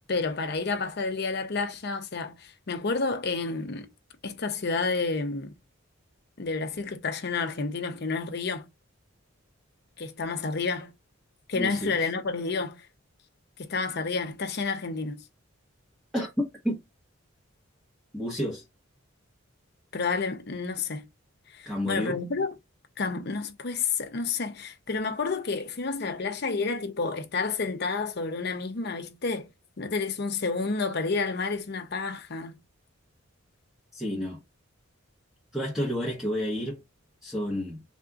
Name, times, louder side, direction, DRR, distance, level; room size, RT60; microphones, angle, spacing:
voice 1, 0.1-3.9 4.2-5.5 6.4-8.7 10.0-10.9 11.5-12.9 13.6-15.2 19.9-21.1 21.5-22.5 23.0-29.5 29.8-32.6, left 4 dB, 50° left, 0.6 m, -30 dB
voice 2, 11.5-12.0 16.1-16.8 18.1-18.6 21.7-22.2 33.9-34.4 35.5-36.8 37.2-37.8, equal, ahead, 1.0 m, -30 dB
3.5 x 2.5 x 3.8 m
head